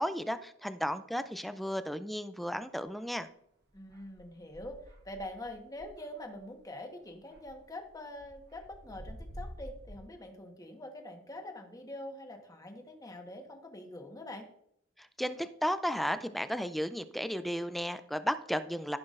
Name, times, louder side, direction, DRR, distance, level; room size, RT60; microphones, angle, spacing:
voice 1, 0.0-3.3 15.0-19.0, equal, ahead, 11 dB, 0.4 m, -34 dB
sound 1, 2.9-3.1 3.7-6.7 7.1-10.0, equal, 55° right, 1.2 m, -49 dB
voice 2, 3.7-14.5, left 1 dB, 20° left, 3 dB, 1.2 m, -45 dB
14.5 x 5.9 x 2.5 m, 0.73 s
head